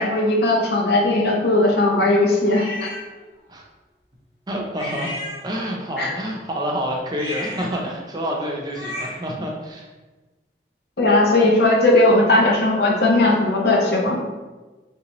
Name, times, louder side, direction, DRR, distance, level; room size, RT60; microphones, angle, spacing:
voice 1, 0.0-2.9 6.0-6.1 11.0-14.2, left 2 dB, 60° left, 0 dB, 0.6 m, -18 dB
sound 1, 2.5-3.0 4.8-5.8 7.1-9.3, left 1 dB, 30° left, 0.9 m, -34 dB
voice 2, 4.5-5.2 5.4-9.9, equal, 25° right, -1 dB, 0.4 m, -28 dB
3.2 x 2.9 x 2.9 m, 1.2 s
head